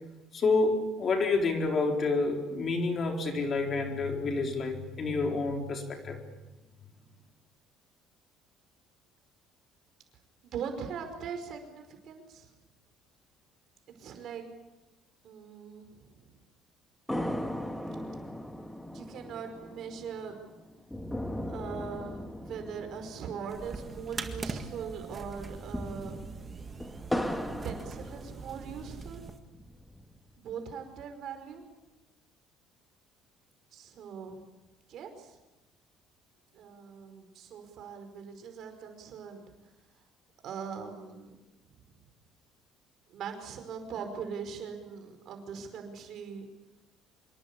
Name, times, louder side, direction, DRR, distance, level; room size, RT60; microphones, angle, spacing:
voice 1, 0.3-6.2, left 3 dB, 30° left, 3 dB, 4.0 m, -29 dB
voice 2, 10.4-12.5 14.0-14.5 15.2-16.3 18.9-20.4 21.4-26.2 27.6-29.2 30.4-31.6 33.7-34.4 34.9-35.4 36.5-39.5 40.4-41.4 43.1-46.5, right 6 dB, 45° right, 6 dB, 5.2 m, -41 dB
sound 1, 17.1-24.7 24.9-25.0 25.5-28.8 29.4-30.4, left 1 dB, 5° left, 1.7 m, -38 dB
sound 2, 23.5-29.4, right 4 dB, 20° right, 1.7 m, -42 dB
26.0 x 23.5 x 8.5 m, 1.1 s
cardioid pair, 175°, 0 cm